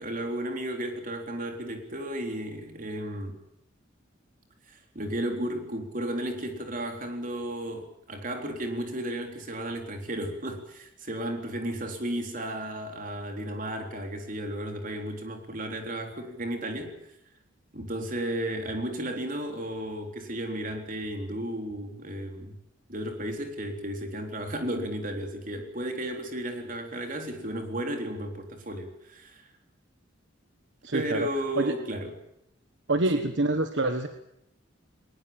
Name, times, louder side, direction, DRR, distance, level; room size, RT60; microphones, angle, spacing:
voice 1, 0.0-3.4 4.7-16.9 17.7-22.6 22.9-29.4 30.9-32.1 33.1-33.3, right 1 dB, 45° right, 4 dB, 3.9 m, -34 dB
voice 2, 30.8-31.3 31.6-31.7 32.9-34.1, right 2 dB, 65° right, 8 dB, 1.4 m, -26 dB
20.5 x 20.0 x 8.9 m, 0.79 s
head